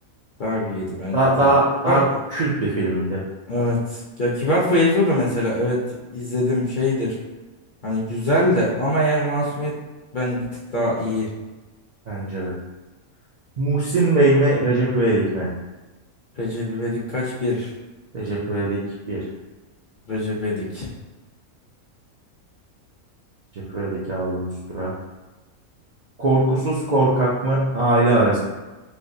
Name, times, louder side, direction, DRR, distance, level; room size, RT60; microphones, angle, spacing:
voice 1, 0.4-1.6 1.9-2.0 3.5-7.2 7.8-9.8 10.1-10.5 10.7-11.3 16.4-17.7 20.1-20.9, left 1 dB, 50° left, -6 dB, 0.6 m, -23 dB
voice 2, 1.1-3.2 12.1-12.5 13.6-15.5 18.1-18.8 19.1-19.2 23.5-24.9 26.2-28.4, right 2 dB, 75° right, -7 dB, 0.3 m, -20 dB
3.3 x 3.1 x 2.7 m, 1.2 s
omnidirectional pair, 1.5 m